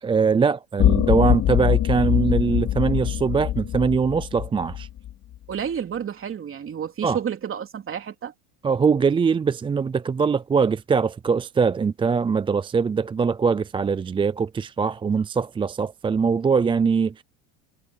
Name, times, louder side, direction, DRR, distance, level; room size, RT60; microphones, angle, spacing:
voice 1, 0.0-4.9 7.0-7.2 8.6-17.2, right 5 dB, 15° right, 0.4 m, -22 dB
sound 1, 0.8-5.1, left 12 dB, 45° left, 4.1 m, -23 dB
voice 2, 5.5-8.3, right 8 dB, 30° right, 3.2 m, -30 dB
supercardioid pair, 110°, 40 cm